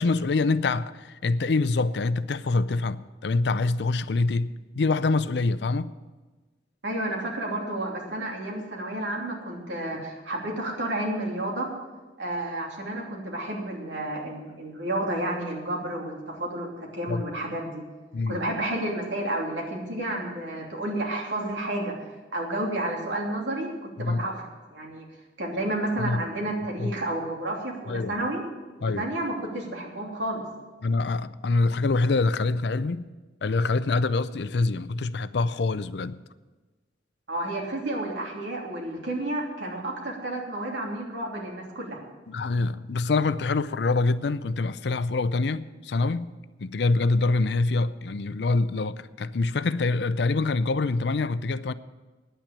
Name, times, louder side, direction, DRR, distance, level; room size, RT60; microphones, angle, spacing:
voice 1, 0.0-5.9 17.1-17.2 18.1-18.4 24.0-24.2 26.0-26.2 26.8-26.9 27.9-28.2 28.8-29.1 30.8-33.1 33.4-36.2 42.3-46.3 46.6-51.7, left 3 dB, 70° left, 0.5 m, -25 dB
voice 2, 6.8-11.7 12.2-17.8 18.3-21.9 22.3-23.7 24.0-24.4 24.7-25.1 25.4-28.4 28.8-30.4 37.3-42.0, right 1 dB, 90° right, 3.0 m, -31 dB
9.9 x 9.0 x 8.7 m
head